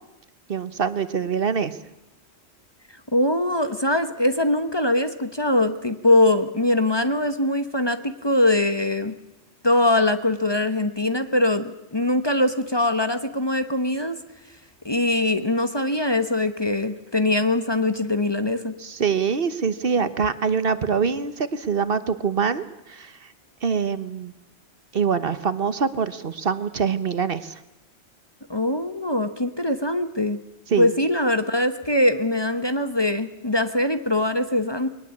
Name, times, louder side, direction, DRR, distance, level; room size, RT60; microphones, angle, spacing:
voice 1, 0.5-1.8 18.8-23.3 23.6-24.3 24.9-27.6 30.7-30.9, right 6 dB, 55° right, 13 dB, 1.2 m, -24 dB
voice 2, 3.1-9.2 9.6-14.2 14.8-18.7 28.5-30.4 30.8-34.9, left 1 dB, 25° left, 10 dB, 1.1 m, -22 dB
21.5 x 19.5 x 8.5 m, 0.92 s
omnidirectional pair, 1.2 m